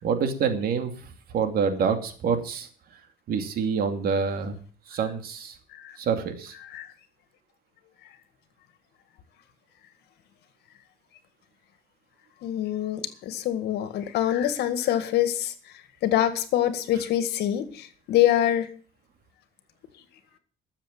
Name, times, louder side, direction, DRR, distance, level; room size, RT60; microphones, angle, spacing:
voice 1, 0.0-2.7 3.3-4.6 4.9-5.6 6.0-6.5, right 6 dB, 60° right, 7 dB, 2.6 m, -27 dB
voice 2, 12.4-15.5 16.0-18.7, left 11 dB, 75° left, 11 dB, 2.0 m, -25 dB
13.0 x 7.3 x 9.0 m, 0.43 s
cardioid pair, 110°, 17 cm